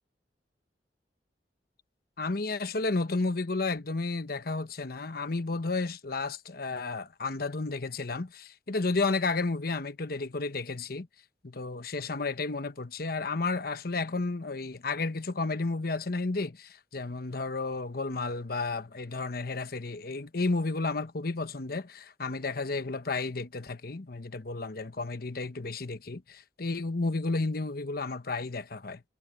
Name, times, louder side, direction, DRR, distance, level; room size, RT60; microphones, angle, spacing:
voice 1, 2.2-11.1 11.4-29.0, left 3 dB, 60° left, 1.1 m, -32 dB
head